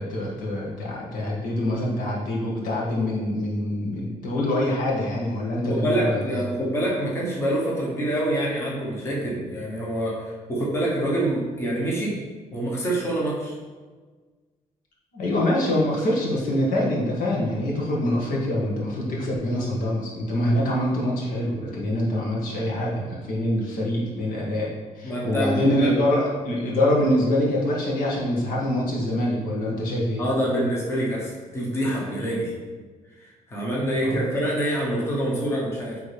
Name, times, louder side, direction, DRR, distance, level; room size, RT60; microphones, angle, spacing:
voice 1, 0.0-6.4 15.1-30.2 34.0-34.3, left 1 dB, 85° left, -4 dB, 1.6 m, -25 dB
voice 2, 5.7-12.2 12.5-13.6 25.0-25.9 30.2-32.5 33.2-36.0, right 1 dB, 20° left, -4 dB, 1.0 m, -26 dB
8.4 x 3.5 x 3.4 m, 1.4 s
cardioid pair, 180°, 14 cm